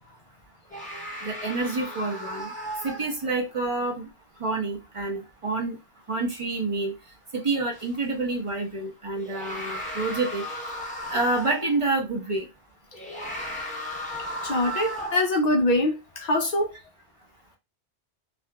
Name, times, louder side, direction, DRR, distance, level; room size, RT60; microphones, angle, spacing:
sound 1, 0.7-3.5 7.7-7.9 9.1-11.8 12.9-15.4, equal, 10° left, 0.6 m, -35 dB
voice 1, 1.2-2.5 2.8-4.1 4.4-5.8 6.1-6.9 7.3-10.4 11.1-12.5, right 3 dB, 35° right, 0.6 m, -28 dB
voice 2, 14.4-16.7, left 1 dB, 60° left, 0.4 m, -24 dB
2.8 x 2.5 x 2.2 m
omnidirectional pair, 1.2 m